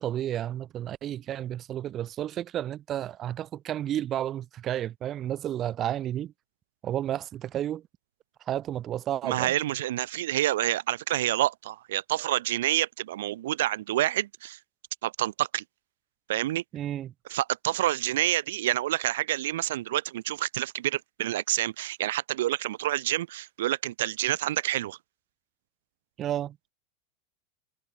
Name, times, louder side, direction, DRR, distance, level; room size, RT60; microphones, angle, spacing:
voice 1, 0.0-6.3 6.8-7.8 8.5-9.5 16.7-17.1 26.2-26.6, right 11 dB, 25° right, 0.5 m, -31 dB
voice 2, 9.2-14.6 15.0-15.6 16.3-16.6 17.3-25.0, right 14 dB, 80° right, 0.8 m, -28 dB
supercardioid pair, 160°, 0 cm